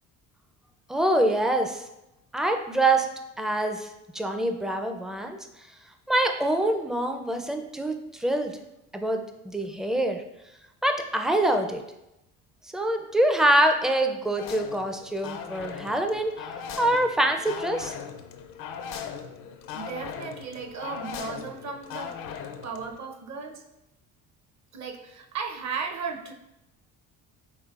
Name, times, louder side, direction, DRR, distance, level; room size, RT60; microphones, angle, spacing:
voice 1, 0.9-1.8 2.3-3.1 3.4-3.9 4.1-5.4 6.1-8.5 8.9-10.2 10.8-11.8 12.7-16.3 16.8-17.9, right 1 dB, ahead, 5 dB, 0.4 m, -25 dB
sound 1, 14.4-23.0, left 7 dB, 60° left, 0.5 m, -39 dB
voice 2, 19.7-22.1 22.6-23.6 24.7-26.3, right 5 dB, 45° right, 4 dB, 0.7 m, -35 dB
5.6 x 3.1 x 2.4 m, 0.89 s
supercardioid pair, 70°, 38 cm